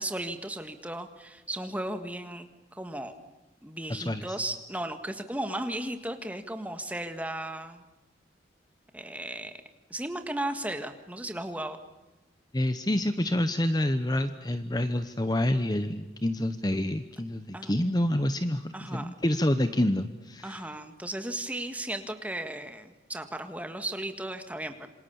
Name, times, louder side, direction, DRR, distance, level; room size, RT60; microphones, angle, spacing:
voice 1, 0.0-3.1 3.6-7.8 8.9-9.5 9.9-11.8 17.5-17.7 18.7-19.1 20.4-24.9, right 1 dB, 10° right, 7 dB, 1.7 m, -35 dB
voice 2, 3.9-4.4 12.5-20.6, left 1 dB, 20° left, 10 dB, 0.9 m, -28 dB
27.5 x 26.0 x 7.1 m, 1.1 s
head